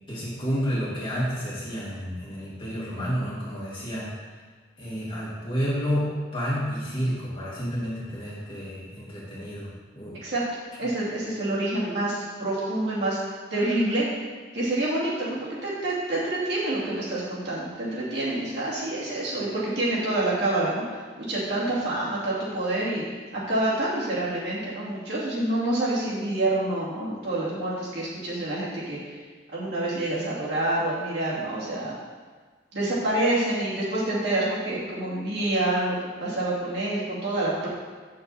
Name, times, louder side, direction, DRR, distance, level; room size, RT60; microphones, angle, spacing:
voice 1, 0.1-4.1 4.8-6.1 6.3-10.2, equal, 25° left, -8 dB, 2.5 m, -30 dB
voice 2, 10.8-13.2 13.5-14.0 14.5-20.8 21.2-23.1 23.5-29.0 29.5-31.9 32.7-37.7, right 1 dB, 60° right, -8 dB, 2.6 m, -27 dB
7.7 x 6.5 x 4.2 m, 1.4 s
head